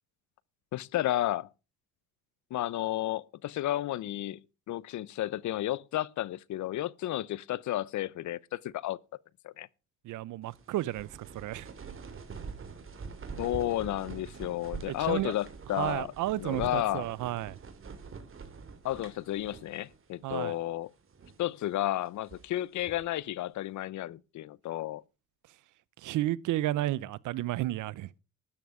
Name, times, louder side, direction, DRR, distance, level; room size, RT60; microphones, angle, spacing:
voice 1, 0.7-1.5 2.5-4.4 4.7-9.0 9.4-9.7 13.4-16.1 16.4-17.1 18.8-20.9 21.4-25.0, left 14 dB, 70° left, 0.7 m, -32 dB
voice 2, 10.0-11.7 14.9-15.3 15.8-17.6 20.2-20.5 26.0-28.1, right 15 dB, 80° right, 0.7 m, -32 dB
sound 1, 10.5-20.0 20.3-20.4 21.0-21.5 22.0-23.1, right 5 dB, 45° right, 3.0 m, -45 dB
13.0 x 9.5 x 4.9 m
cardioid pair, 90°, 30 cm